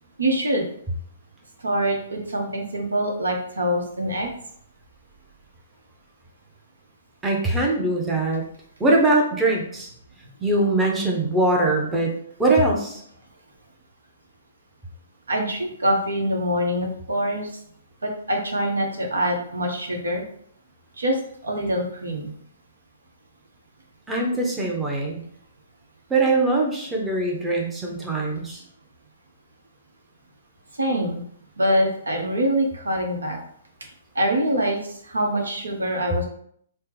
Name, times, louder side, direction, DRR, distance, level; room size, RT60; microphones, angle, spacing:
voice 1, 0.2-0.6 1.6-4.3 15.3-17.5 18.0-20.2 21.0-21.2 21.4-22.3 30.8-31.2 31.6-33.4 34.1-36.2, equal, 80° right, 1 dB, 0.8 m, -24 dB
voice 2, 7.2-8.4 8.8-9.9 10.4-12.1 12.4-13.0 24.1-25.2 26.1-28.6, right 2 dB, 10° right, -1 dB, 0.7 m, -22 dB
4.2 x 2.0 x 3.4 m, 0.65 s
figure-of-eight pair, 125°, 0 cm